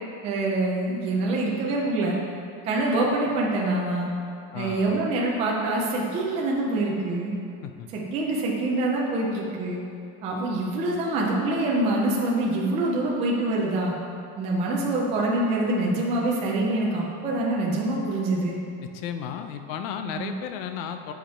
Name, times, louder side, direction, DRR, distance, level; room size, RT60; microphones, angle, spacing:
voice 1, 0.2-2.2 2.6-4.1 4.5-7.3 7.9-9.8 10.2-13.9 14.4-18.6 20.0-20.3, right 2 dB, 15° right, -3 dB, 0.3 m, -25 dB
voice 2, 4.5-4.9 7.6-7.9 18.8-21.1, left 8 dB, 65° left, 7 dB, 0.7 m, -34 dB
7.6 x 5.1 x 4.4 m, 2.5 s
cardioid pair, 180°, 44 cm